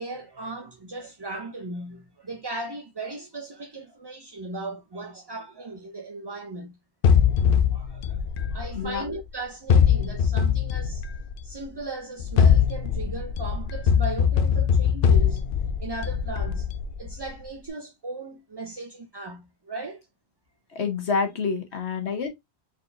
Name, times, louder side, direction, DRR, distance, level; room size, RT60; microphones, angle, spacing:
voice 1, 0.0-6.8 7.5-8.2 8.5-11.1 11.4-15.5 15.8-16.7 17.0-20.1, right 3 dB, 30° right, 0.5 m, -37 dB
sound 1, 7.0-9.2 9.7-11.5 12.2-17.3, left 7 dB, 60° left, 0.7 m, -22 dB
voice 2, 20.7-22.3, left 5 dB, 80° left, 1.6 m, -27 dB
4.4 x 4.1 x 2.6 m
omnidirectional pair, 1.1 m